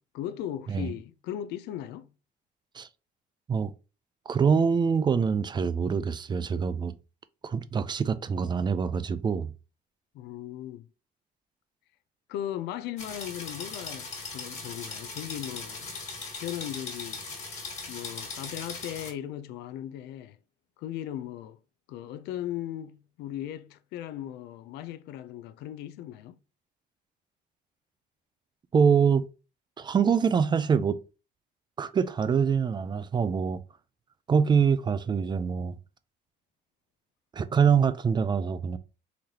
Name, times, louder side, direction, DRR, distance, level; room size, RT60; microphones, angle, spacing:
voice 1, 0.0-2.1 10.1-10.9 12.3-15.9 16.4-17.2 17.9-20.4 20.8-21.6 21.9-26.4, left 11 dB, 80° left, 0.4 m, -37 dB
voice 2, 4.3-6.9 7.4-9.5 28.7-29.2 29.8-31.0 31.8-33.6 34.3-35.8 37.3-38.8, right 6 dB, 25° right, 0.3 m, -25 dB
sound 1, 13.0-19.1, left 4 dB, 40° left, 1.7 m, -39 dB
3.9 x 3.2 x 2.8 m
cardioid pair, 110°, 17 cm